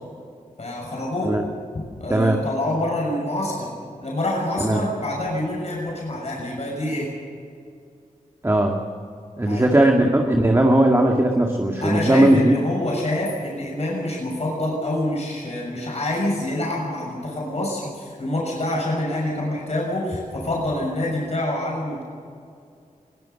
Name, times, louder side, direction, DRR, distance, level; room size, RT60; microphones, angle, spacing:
voice 1, 0.6-1.3 2.0-3.7 4.0-7.1 9.4-9.8 11.8-22.0, left 1 dB, 50° left, -3 dB, 6.5 m, -26 dB
voice 2, 2.1-2.4 4.6-4.8 8.4-8.8 9.4-12.5, right 1 dB, 20° right, 1 dB, 1.9 m, -18 dB
21.5 x 17.5 x 7.1 m, 2.3 s
wide cardioid pair, 70°, 14 cm